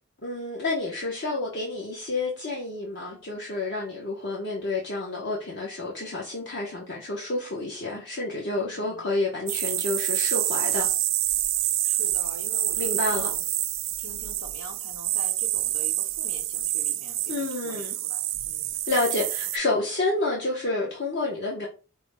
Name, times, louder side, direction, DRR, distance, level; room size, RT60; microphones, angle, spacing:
voice 1, 0.2-10.9 12.8-13.3 17.3-18.0 18.9-21.7, left 2 dB, 55° left, 0.9 m, -29 dB
voice 2, 8.5-9.1 11.6-13.5 14.0-18.8, left 2 dB, 90° left, 1.2 m, -44 dB
sound 1, 9.5-19.6, right 14 dB, 75° right, 0.4 m, -27 dB
4.8 x 2.2 x 4.7 m
head